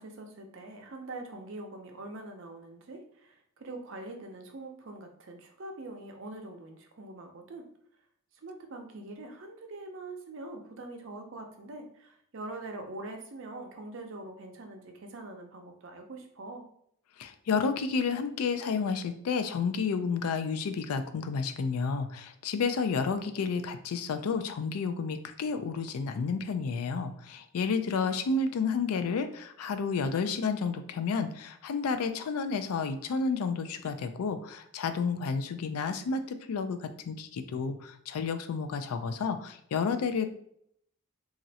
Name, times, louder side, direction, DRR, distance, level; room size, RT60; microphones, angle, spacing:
voice 1, 0.0-7.7 8.4-16.7, right 2 dB, 55° right, 3 dB, 0.5 m, -43 dB
voice 2, 17.2-40.3, left 5 dB, 85° left, 9 dB, 0.4 m, -31 dB
3.0 x 2.4 x 2.7 m, 0.71 s
head